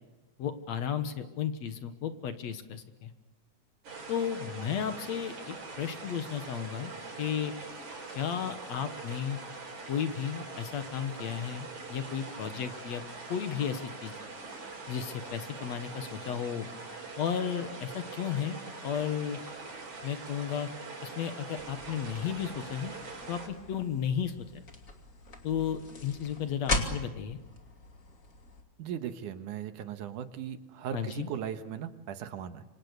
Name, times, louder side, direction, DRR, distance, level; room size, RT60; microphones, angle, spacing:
voice 1, 0.4-3.1 4.1-6.9 7.2-7.5 8.2-9.4 9.9-13.0 13.3-14.1 14.9-16.7 17.2-19.4 20.0-20.7 21.0-22.9 23.3-24.6 25.4-27.4 30.9-31.3, left 8 dB, 65° left, 9 dB, 2.5 m, -34 dB
sound 1, 3.8-23.5, right 3 dB, 70° right, 6.0 m, -43 dB
sound 2, 21.6-28.6, left 2 dB, 30° left, 2.6 m, -39 dB
voice 2, 28.8-32.6, right 9 dB, 85° right, 9 dB, 2.8 m, -38 dB
27.5 x 25.5 x 6.8 m, 1.1 s
omnidirectional pair, 3.5 m